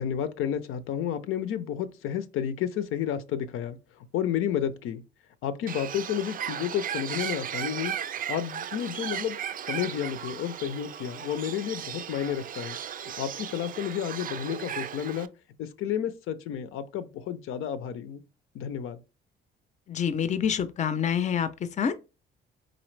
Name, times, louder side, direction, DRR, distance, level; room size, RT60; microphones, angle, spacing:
voice 1, 0.0-5.0 5.4-7.9 8.3-9.4 9.7-12.8 13.2-15.3 15.6-18.2 18.5-19.0, left 9 dB, 80° left, 0.5 m, -31 dB
Bird, 5.7-15.3, right 9 dB, 45° right, 0.4 m, -36 dB
voice 2, 19.9-21.5 21.8-22.1, left 8 dB, 35° left, 0.5 m, -27 dB
4.0 x 3.8 x 3.2 m
cardioid pair, 100°, 21 cm